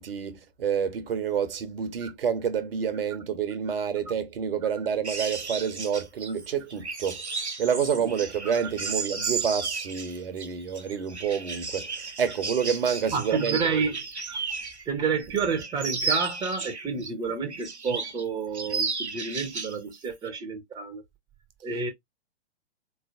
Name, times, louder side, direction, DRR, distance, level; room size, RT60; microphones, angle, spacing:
voice 1, 0.0-7.2 7.6-13.6, right 7 dB, 60° right, 1.0 m, -28 dB
sound 1, 5.0-14.9 15.2-17.1 17.5-18.2 18.5-19.8 20.1-20.3, right 4 dB, 80° right, 1.2 m, -34 dB
voice 2, 13.1-14.0 14.3-14.4 14.9-21.0 21.6-21.9, right 5 dB, 10° right, 0.9 m, -30 dB
4.2 x 3.2 x 2.5 m
figure-of-eight pair, 110°, 33 cm